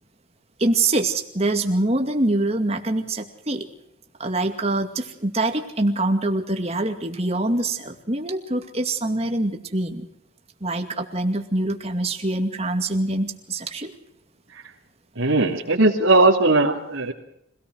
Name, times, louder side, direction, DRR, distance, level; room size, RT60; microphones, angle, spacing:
voice 1, 0.6-3.6 4.2-10.1 10.6-13.9, right 2 dB, 30° right, 5 dB, 2.3 m, -24 dB
voice 2, 15.2-17.1, right 2 dB, 80° right, -4 dB, 2.8 m, -18 dB
25.5 x 17.5 x 6.4 m, 0.78 s
head